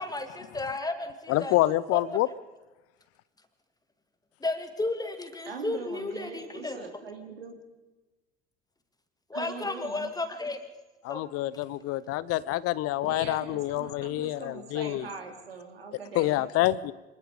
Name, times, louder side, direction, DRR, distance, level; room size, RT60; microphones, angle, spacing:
voice 1, 0.0-1.5 1.9-2.0 4.4-6.8 9.3-10.6 11.1-11.2, left 2 dB, 15° left, 2.9 m, -33 dB
voice 2, 1.3-2.3 11.0-15.1 16.1-16.9, left 15 dB, 55° left, 0.8 m, -27 dB
voice 3, 5.5-7.6 9.3-10.1 13.0-16.5, right 5 dB, 85° right, 3.1 m, -41 dB
25.0 x 21.0 x 5.1 m
figure-of-eight pair, 65°, 29 cm